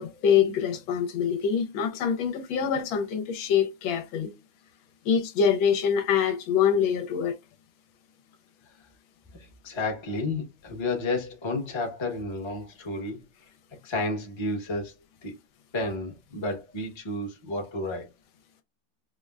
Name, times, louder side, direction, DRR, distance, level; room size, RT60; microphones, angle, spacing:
voice 1, 0.0-4.3 5.0-7.4, left 7 dB, 80° left, 1.3 m, -25 dB
voice 2, 9.6-13.2 13.8-14.9 15.2-15.3 15.7-18.1, left 2 dB, 25° left, 0.6 m, -31 dB
4.9 x 2.1 x 2.3 m
omnidirectional pair, 2.2 m